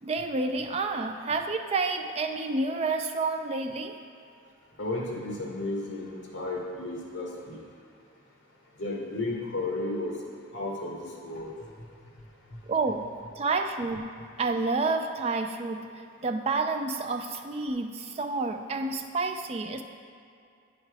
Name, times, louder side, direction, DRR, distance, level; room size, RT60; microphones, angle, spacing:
voice 1, 0.0-4.0 12.7-13.1 13.3-19.8, right 3 dB, 30° right, 5 dB, 0.3 m, -29 dB
voice 2, 4.8-7.6 8.8-10.2 10.5-11.5, left 2 dB, 55° left, -2 dB, 1.1 m, -33 dB
9.1 x 3.3 x 4.6 m, 2.4 s
head